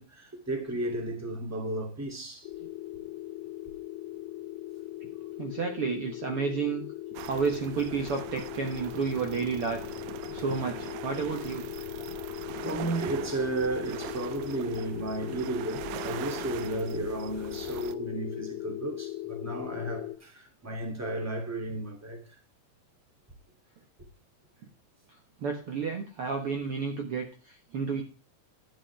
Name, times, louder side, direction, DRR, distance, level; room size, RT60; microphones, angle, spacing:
voice 1, 0.0-2.5 10.2-10.5 12.1-12.3 12.6-22.4, right 2 dB, 5° right, 2.3 m, -34 dB
sound 1, 2.4-20.2, left 15 dB, 75° left, 2.2 m, -39 dB
voice 2, 5.4-6.9 7.2-9.9 10.3-11.7 25.4-28.0, right 5 dB, 55° right, 1.9 m, -31 dB
sound 2, 7.2-18.0, right 12 dB, 80° right, 2.1 m, -42 dB
11.5 x 10.0 x 3.4 m
omnidirectional pair, 3.6 m